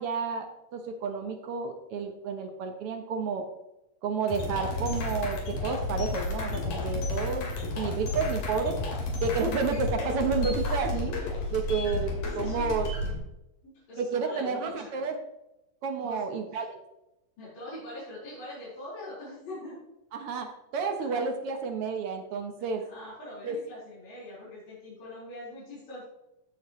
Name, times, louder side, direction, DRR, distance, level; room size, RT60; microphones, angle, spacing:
voice 1, 0.0-3.4 4.0-7.5 7.8-8.8 9.2-11.1 11.5-12.9 14.0-15.1 15.8-16.8 20.1-22.8 23.4-23.5, right 5 dB, 65° right, 5 dB, 1.5 m, -31 dB
sound 1, 4.3-13.2, left 2 dB, 85° left, 4.1 m, -32 dB
voice 2, 7.1-7.5 12.2-12.7 13.6-15.0 16.0-16.2 16.5-16.7 17.4-19.8 21.0-21.2 22.9-26.0, left 1 dB, 55° left, -10 dB, 5.7 m, -43 dB
16.0 x 7.5 x 3.1 m, 0.91 s
omnidirectional pair, 3.8 m